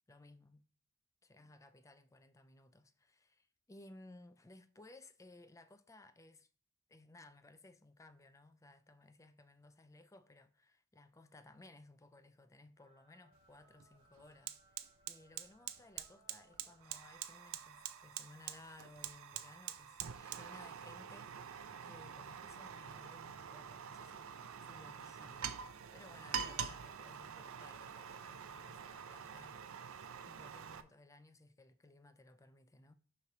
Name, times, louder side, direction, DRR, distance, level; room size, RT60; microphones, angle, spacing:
voice 1, 0.1-0.7 1.2-6.5 6.9-25.6 25.9-29.6 30.2-32.9, left 2 dB, 15° left, 0.4 m, -60 dB
sound 1, 12.8-23.8, right 1 dB, 25° right, 1.1 m, -71 dB
Fire, 13.3-13.5 13.8-30.8, right 8 dB, 65° right, 0.5 m, -46 dB
6.7 x 3.3 x 5.8 m
head